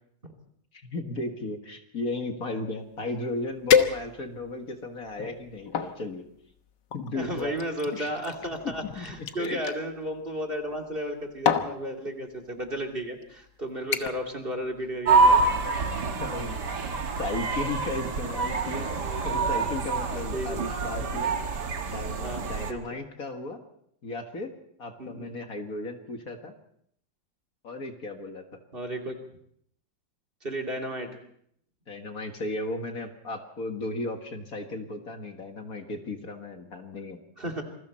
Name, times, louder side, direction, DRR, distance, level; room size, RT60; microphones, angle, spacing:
voice 1, 0.7-6.2 6.9-7.6 7.9-8.2 9.0-9.1 9.4-9.6 16.2-16.6 17.2-18.9 19.2-21.4 21.9-23.6 24.0-24.5 24.8-26.5 27.6-28.4 31.9-37.2, left 2 dB, 50° left, 4 dB, 2.1 m, -35 dB
sound 1, 3.0-3.1 3.7-4.5 5.1-5.9 6.9-9.8 10.9-11.1 11.4-11.8 12.6-12.8 13.2-13.5 13.9-14.3 14.6-15.0 15.4-15.5, left 8 dB, 70° left, 1.8 m, -27 dB
voice 2, 7.1-15.4 20.3-20.5 22.2-23.0 25.0-25.3 28.7-29.2 30.4-31.2 37.4-37.6, equal, 30° right, 6 dB, 2.8 m, -33 dB
sound 2, 15.1-22.7, right 4 dB, 65° right, 2.2 m, -26 dB
28.0 x 21.0 x 4.4 m, 0.68 s
omnidirectional pair, 2.0 m